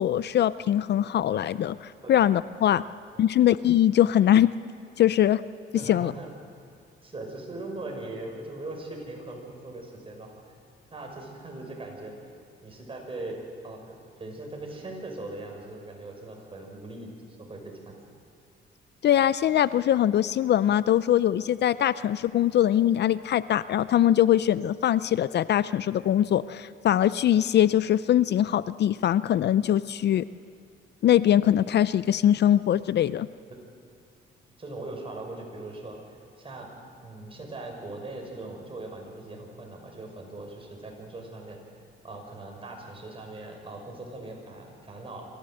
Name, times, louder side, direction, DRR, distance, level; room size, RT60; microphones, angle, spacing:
voice 1, 0.0-2.8 3.2-4.5 5.0-5.4 5.9-6.1 19.0-30.3 31.0-33.3, left 11 dB, 60° left, 16 dB, 0.5 m, -22 dB
voice 2, 5.7-6.3 7.0-10.3 10.9-12.3 12.6-13.4 13.6-17.9 34.6-36.7 37.0-41.6 42.0-45.3, right 2 dB, 25° right, 1 dB, 6.2 m, -40 dB
25.0 x 15.5 x 7.9 m, 2.5 s
cardioid pair, 90°, 20 cm